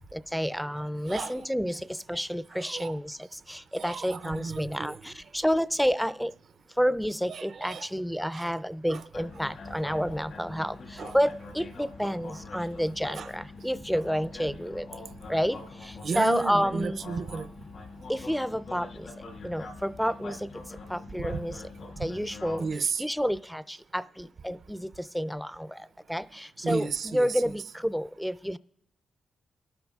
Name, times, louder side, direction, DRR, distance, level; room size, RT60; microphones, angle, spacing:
voice 1, 0.1-6.3 6.8-15.0 15.3-17.0 18.1-21.6 22.0-22.7 23.0-28.6, equal, ahead, 16 dB, 0.4 m, -30 dB
voice 2, 1.1-1.4 2.5-3.0 3.8-5.0 7.3-7.9 8.3-8.5 8.9-9.0 11.0-11.2 13.1-13.3 16.0-17.5 22.6-23.0 26.6-27.4, right 5 dB, 65° right, 11 dB, 0.5 m, -33 dB
sound 1, 9.1-22.8, left 3 dB, 80° left, 2.1 m, -44 dB
22.5 x 12.5 x 2.4 m, 0.79 s
cardioid pair, 75°, 0 cm